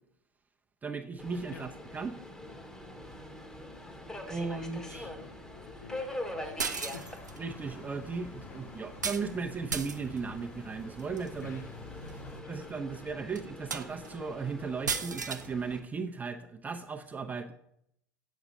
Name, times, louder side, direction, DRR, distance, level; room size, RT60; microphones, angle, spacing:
voice 1, 0.8-2.2 4.3-5.1 7.4-11.6 12.5-17.5, right 4 dB, 15° right, 4 dB, 0.8 m, -36 dB
Subway metro underground, 1.2-15.8, left 1 dB, 5° left, 1.3 m, -44 dB
voice 2, 4.9-7.2 8.5-8.6 11.4-13.2, left 5 dB, 75° left, 4 dB, 1.1 m, -51 dB
sound 1, 6.6-12.4, left 2 dB, 25° left, 1.2 m, -49 dB
sound 2, 6.6-7.4 9.0-9.3 9.7-10.2 11.0-11.3 12.1-12.2 12.6-12.7 13.4-13.5 13.7-14.1 14.9-15.5, right 5 dB, 80° right, 0.6 m, -34 dB
8.3 x 6.0 x 5.3 m, 0.73 s
figure-of-eight pair, 80°, 9 cm